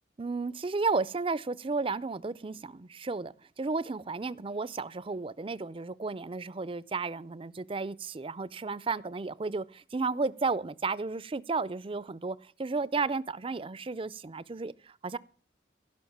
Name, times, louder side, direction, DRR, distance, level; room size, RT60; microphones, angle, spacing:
voice 1, 0.2-15.2, right 4 dB, 30° right, 0.5 m, -33 dB
16.0 x 6.0 x 7.2 m
head